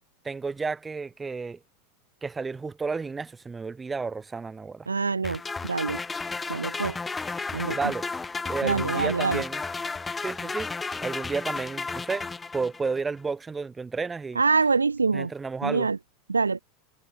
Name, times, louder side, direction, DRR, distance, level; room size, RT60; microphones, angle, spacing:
voice 1, 0.2-1.6 2.2-4.9 7.7-8.1 8.5-9.6 10.2-10.7 11.0-14.4 15.1-15.9, right 4 dB, 15° right, 2.6 m, -32 dB
voice 2, 4.9-6.0 6.5-6.9 7.5-7.8 8.6-9.4 14.4-15.3 15.6-16.0 16.3-16.6, right 4 dB, 90° right, 0.5 m, -25 dB
sound 1, 5.2-13.0, left 4 dB, 15° left, 2.1 m, -33 dB
figure-of-eight pair, 85°, 0 cm